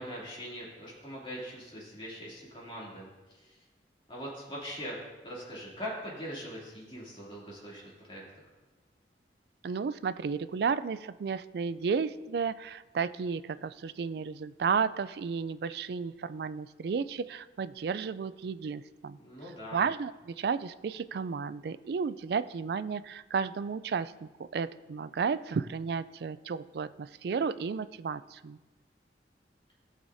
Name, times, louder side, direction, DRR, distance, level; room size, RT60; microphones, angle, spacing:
voice 1, 0.0-3.6 4.1-5.0 5.2-8.2 19.2-19.8, equal, 30° left, -6 dB, 2.7 m, -42 dB
voice 2, 9.6-19.2 19.7-28.6, right 5 dB, 60° right, 14 dB, 0.3 m, -33 dB
16.0 x 6.4 x 2.7 m, 1.2 s
head